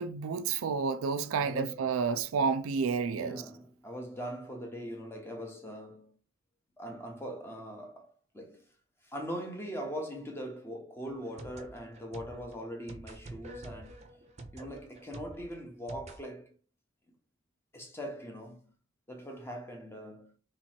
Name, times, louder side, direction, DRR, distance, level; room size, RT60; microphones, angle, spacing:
voice 1, 0.0-3.4, right 5 dB, 75° right, 0.3 m, -30 dB
voice 2, 1.4-2.0 3.1-6.1 6.8-8.6 9.0-13.9 14.5-16.5 17.7-18.7 19.1-20.3, equal, 10° left, 0.7 m, -41 dB
sound 1, 11.0-16.2, right 1 dB, 30° right, 0.6 m, -47 dB
3.1 x 3.0 x 4.2 m
head